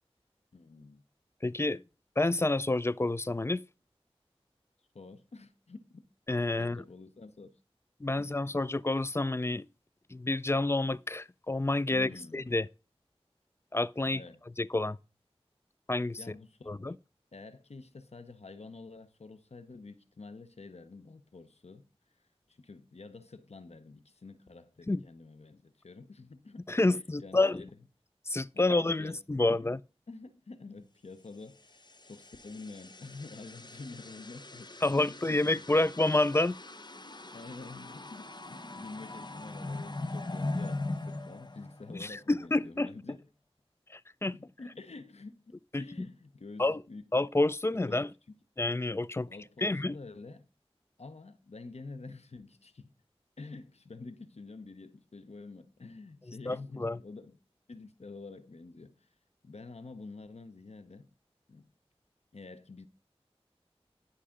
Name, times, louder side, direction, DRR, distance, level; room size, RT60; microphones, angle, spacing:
voice 1, 0.5-1.0 4.9-6.0 6.6-7.5 8.2-8.5 11.9-12.5 14.1-14.4 16.2-17.0 17.3-21.8 22.5-27.7 28.5-29.6 30.1-35.7 37.3-43.3 44.3-47.1 47.7-48.0 49.3-50.5 51.0-52.9 53.4-57.4 57.7-59.1 59.4-61.1 61.5-61.7 62.3-62.9, left 3 dB, 90° left, 0.9 m, -48 dB
voice 2, 1.4-1.8 2.2-3.6 6.3-6.8 8.0-9.7 10.1-12.7 13.7-14.2 14.6-15.0 15.9-16.2 16.7-17.0 24.9-25.0 26.7-27.6 28.3-29.8 34.8-36.6 41.9-42.9 43.9-44.3 45.7-45.8 46.6-46.8 47.1-48.1 48.6-49.3 49.6-50.0 56.5-57.0, left 2 dB, 25° left, 0.4 m, -29 dB
sound 1, 31.6-42.3, left 2 dB, 45° left, 0.9 m, -41 dB
11.5 x 5.6 x 3.7 m
wide cardioid pair, 45°, 11 cm